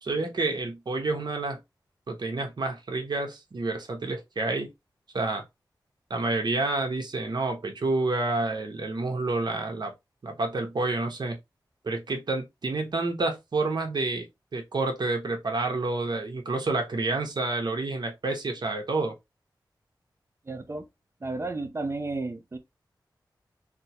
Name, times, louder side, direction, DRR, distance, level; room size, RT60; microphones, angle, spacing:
voice 1, 0.0-1.6 2.1-4.7 5.1-5.4 6.1-9.9 10.2-11.4 11.8-14.3 14.5-19.1, right 3 dB, 65° right, 0.9 m, -29 dB
voice 2, 20.5-20.9 21.2-22.6, right 3 dB, 35° right, 0.6 m, -32 dB
3.4 x 2.0 x 2.8 m
wide cardioid pair, 85°, 8 cm